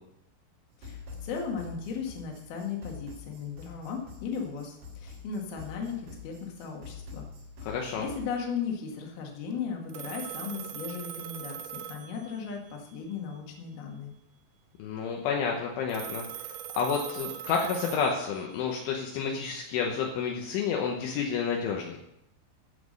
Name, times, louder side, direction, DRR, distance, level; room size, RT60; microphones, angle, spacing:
sound 1, 0.7-8.4, left 5 dB, 65° right, 6.2 m, -46 dB
voice 1, 0.8-7.3 7.6-14.1, left 6 dB, 60° left, 1 dB, 3.2 m, -36 dB
voice 2, 7.6-8.1 14.8-16.2 16.8-22.0, left 6 dB, 75° left, 0 dB, 3.3 m, -30 dB
Telephone, 9.9-12.8 15.9-18.7, right 10 dB, 85° right, 3.1 m, -41 dB
15.0 x 6.0 x 6.6 m, 0.82 s
omnidirectional pair, 5.8 m